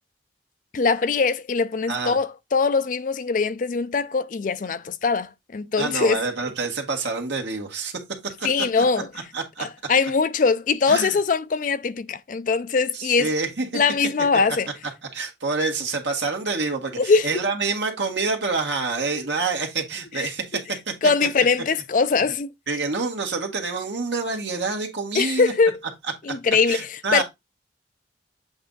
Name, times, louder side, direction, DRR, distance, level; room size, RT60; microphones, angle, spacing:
voice 1, 0.7-6.2 8.4-9.1 9.6-13.3 13.7-14.7 17.0-17.3 20.2-20.3 21.0-22.5 25.1-25.8 26.3-27.2, left 4 dB, 45° left, 0.4 m, -22 dB
voice 2, 5.8-8.0 8.4-8.5 9.3-9.6 10.9-11.2 12.9-13.8 15.1-21.1 22.7-25.5 26.7-27.2, right 4 dB, 70° right, 1.7 m, -27 dB
7.9 x 3.4 x 3.9 m
head